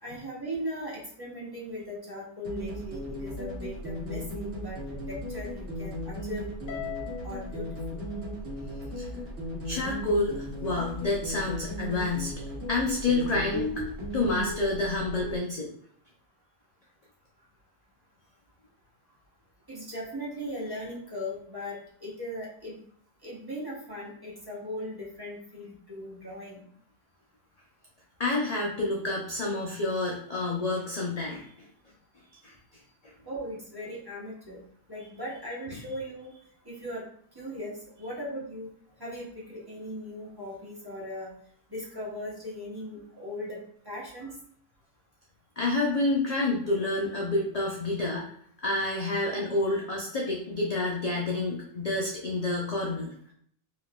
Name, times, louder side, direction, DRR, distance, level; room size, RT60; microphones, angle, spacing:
voice 1, 0.0-6.8 7.2-7.7 19.7-22.8 23.2-26.6 33.2-34.6 34.9-36.3 36.6-37.1 37.3-38.7 39.0-41.3 41.7-44.3, equal, 20° right, -6 dB, 1.0 m, -38 dB
sound 1, 2.5-15.4, equal, 60° right, 1.2 m, -36 dB
Harp, 6.7-9.1, left 12 dB, 80° left, 1.0 m, -42 dB
voice 2, 9.6-12.3 12.7-13.7 14.1-15.7 28.2-31.7 32.4-32.5 45.6-48.3 48.6-53.3, left 2 dB, 55° left, -2 dB, 0.4 m, -28 dB
3.8 x 2.8 x 2.3 m, 0.62 s
omnidirectional pair, 1.3 m